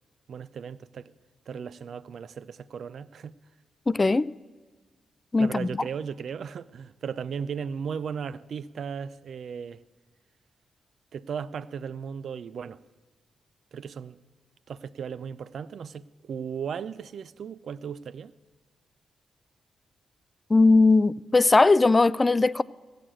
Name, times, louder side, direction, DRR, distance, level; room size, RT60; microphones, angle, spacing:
voice 1, 0.3-1.1 1.5-3.3 5.4-9.8 11.1-12.8 13.7-14.2 14.7-18.3, right 7 dB, 70° right, 0.4 m, -36 dB
voice 2, 3.9-4.3 5.3-5.7 20.5-22.6, left 3 dB, 30° left, 0.3 m, -19 dB
14.5 x 6.6 x 8.9 m
supercardioid pair, 45°, 0 cm